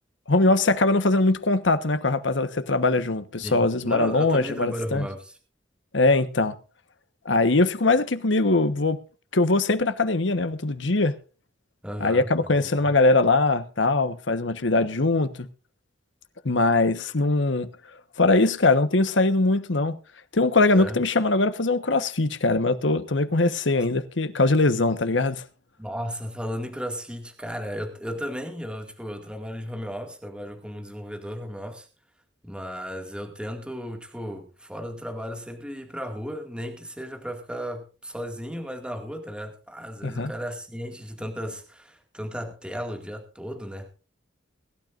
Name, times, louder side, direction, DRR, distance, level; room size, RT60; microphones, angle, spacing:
voice 1, 0.3-5.1 5.9-6.5 7.2-9.0 9.3-11.1 12.0-15.5 16.4-17.7 18.2-20.0 20.3-25.4 40.0-40.3, left 2 dB, 85° left, 1.2 m, -22 dB
voice 2, 3.4-5.4 11.8-12.6 20.7-21.0 23.7-23.9 25.8-31.9 32.4-43.9, equal, 5° right, 2.1 m, -35 dB
22.5 x 12.5 x 2.5 m
head